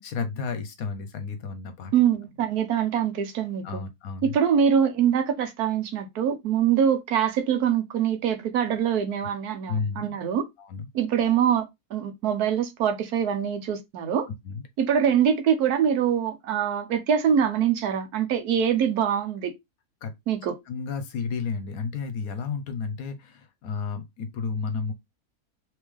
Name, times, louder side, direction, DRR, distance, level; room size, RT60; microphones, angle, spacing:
voice 1, 0.0-1.9 3.6-4.2 9.7-10.1 10.6-10.9 14.4-14.6 20.0-20.1 20.7-24.9, left 5 dB, 70° left, 1.1 m, -32 dB
voice 2, 1.9-3.8 4.2-10.4 10.9-14.3 14.8-19.5 20.3-20.6, right 8 dB, 75° right, 1.2 m, -24 dB
3.2 x 3.2 x 3.4 m
omnidirectional pair, 1.7 m